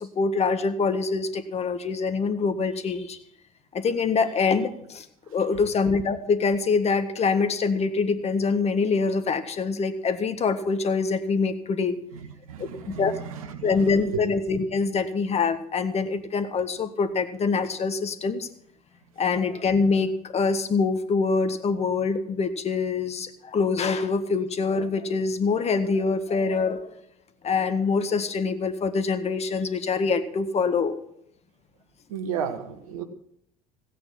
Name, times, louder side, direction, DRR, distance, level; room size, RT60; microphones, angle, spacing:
voice 1, 0.0-3.2 3.7-5.1 5.3-12.0 12.6-13.1 13.6-18.5 19.2-27.0 27.4-31.0, left 4 dB, 35° left, 10 dB, 1.6 m, -25 dB
voice 2, 12.5-13.7 14.1-14.2 32.1-33.0, right 7 dB, 75° right, 9 dB, 1.4 m, -33 dB
16.5 x 9.2 x 6.0 m, 0.71 s
figure-of-eight pair, 60°, 18 cm